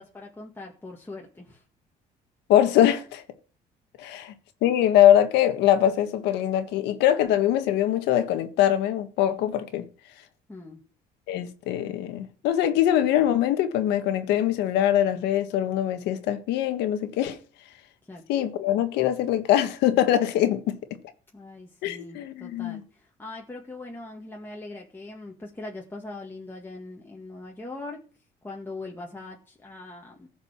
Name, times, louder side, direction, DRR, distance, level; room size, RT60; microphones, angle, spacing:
voice 1, 0.1-1.6 10.5-10.8 18.1-18.2 21.3-28.0 28.4-30.3, left 2 dB, 10° left, 2.0 m, -41 dB
voice 2, 2.5-3.2 4.0-4.3 4.6-9.8 11.3-17.4 18.3-20.7 21.8-22.8, left 11 dB, 90° left, 1.6 m, -22 dB
15.0 x 5.3 x 7.4 m
cardioid pair, 110°, 17 cm